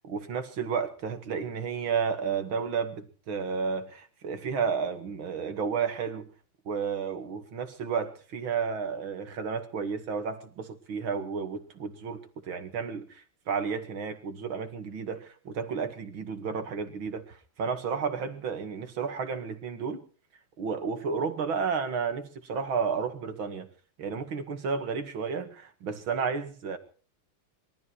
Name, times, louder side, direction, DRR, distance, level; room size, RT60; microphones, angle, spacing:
voice 1, 0.0-6.3 6.7-20.0 20.6-23.7 24.0-26.8, right 6 dB, 75° right, 7 dB, 2.8 m, -32 dB
22.5 x 13.5 x 4.8 m, 0.40 s
omnidirectional pair, 2.3 m